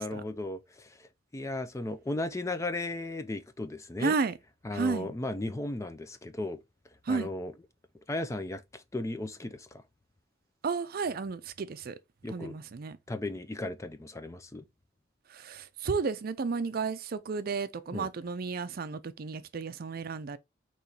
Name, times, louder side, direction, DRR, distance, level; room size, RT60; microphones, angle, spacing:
voice 1, 0.0-4.2 4.6-6.6 7.1-7.5 8.1-9.8 12.2-12.6 13.1-14.6 17.9-18.1, left 2 dB, 15° left, 0.4 m, -36 dB
voice 2, 4.0-4.3 4.7-5.1 7.1-7.3 10.6-11.9 12.3-13.0 15.3-20.4, right 4 dB, 50° right, 0.4 m, -32 dB
4.2 x 3.0 x 3.9 m
head